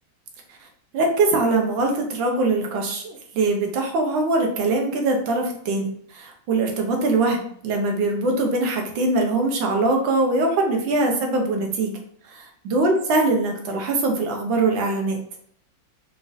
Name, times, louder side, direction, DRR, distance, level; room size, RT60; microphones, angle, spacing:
voice 1, 0.9-11.9 12.3-15.2, right 2 dB, 75° right, 2 dB, 1.4 m, -22 dB
4.9 x 2.5 x 2.6 m, 0.62 s
omnidirectional pair, 2.1 m